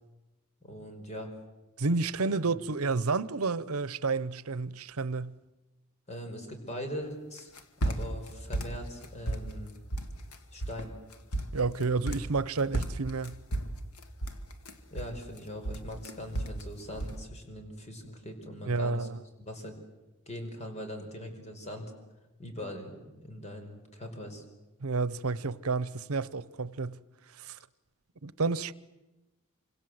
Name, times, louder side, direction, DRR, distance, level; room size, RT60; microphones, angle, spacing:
voice 1, 0.6-1.3 2.2-2.4 6.1-7.5 7.8-9.8 10.5-10.9 14.9-19.1 19.4-19.8 20.3-21.9 22.4-24.4, equal, 30° left, 5.1 m, -41 dB
voice 2, 1.8-5.4 11.5-13.4 18.7-19.2 24.8-27.0 27.4-27.6 28.2-28.7, right 4 dB, 80° right, 0.9 m, -30 dB
sound 1, 7.4-8.3 8.5-9.6 9.9-10.4 10.6-10.8 11.1-12.4 12.7-15.4 15.7-16.6 16.9-17.2, right 1 dB, 85° left, 2.3 m, -33 dB
27.5 x 26.0 x 7.9 m
head